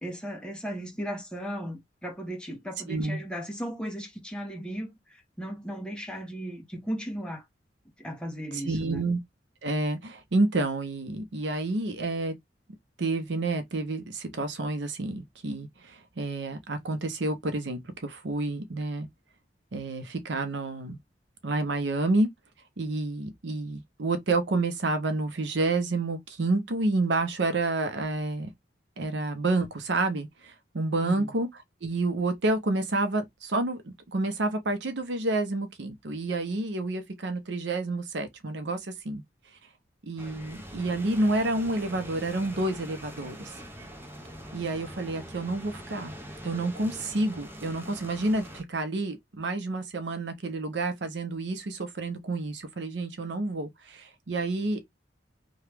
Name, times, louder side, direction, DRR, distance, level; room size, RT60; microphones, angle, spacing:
voice 1, 0.0-7.4 8.0-9.0 31.0-31.3, equal, 5° left, 1.0 m, -36 dB
voice 2, 2.9-3.2 8.5-9.2 9.6-12.3 13.0-19.1 19.7-21.0 21.4-22.3 22.8-28.5 29.0-31.5 31.8-39.2 40.0-43.6 44.5-46.2 46.4-54.8, right 2 dB, 75° right, 0.7 m, -29 dB
sound 1, 40.2-48.6, equal, 15° right, 0.7 m, -43 dB
2.9 x 2.3 x 3.3 m
head